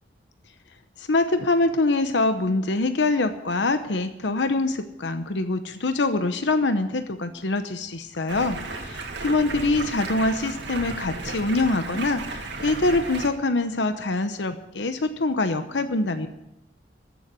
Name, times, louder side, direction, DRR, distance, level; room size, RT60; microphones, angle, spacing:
voice 1, 1.0-16.3, left 2 dB, 85° left, 9 dB, 0.9 m, -24 dB
Stream, 8.3-13.3, right 3 dB, 75° right, 2.0 m, -34 dB
13.5 x 7.2 x 9.4 m, 0.88 s
head